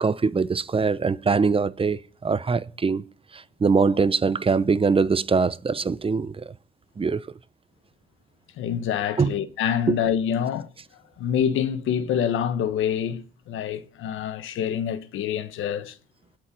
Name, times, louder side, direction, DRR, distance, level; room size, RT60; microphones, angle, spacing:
voice 1, 0.0-3.1 3.3-6.5 7.0-7.3 9.2-9.3 9.9-10.0, right 4 dB, 25° right, 0.9 m, -23 dB
voice 2, 8.6-10.7 11.2-16.0, left 9 dB, 85° left, 1.4 m, -26 dB
19.5 x 6.9 x 10.0 m
cardioid pair, 90°, 20 cm